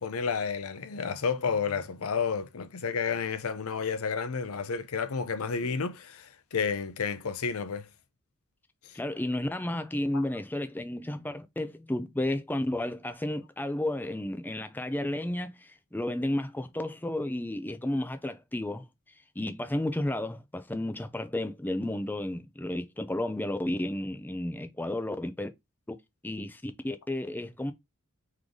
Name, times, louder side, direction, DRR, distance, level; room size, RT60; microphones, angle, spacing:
voice 1, 0.0-7.9 8.8-9.0 10.1-10.2, left 5 dB, 70° left, 0.6 m, -31 dB
voice 2, 8.9-18.9 19.4-25.5 26.2-27.7, left 1 dB, 10° left, 0.5 m, -32 dB
3.9 x 3.2 x 3.6 m
head